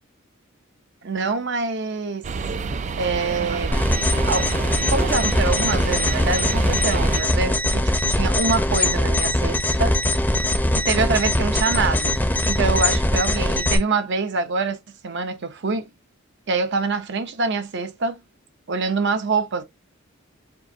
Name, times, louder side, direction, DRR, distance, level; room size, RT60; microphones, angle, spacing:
voice 1, 1.0-2.3 3.0-3.7 4.3-4.5 4.8-10.0 10.7-15.9 16.5-18.2 18.7-19.6, right 4 dB, 55° right, 0.7 m, -25 dB
sound 1, 2.2-7.2, right 4 dB, 35° right, 0.4 m, -28 dB
sound 2, 3.7-13.8, left 1 dB, 10° left, 0.7 m, -21 dB
4.6 x 2.5 x 2.8 m
head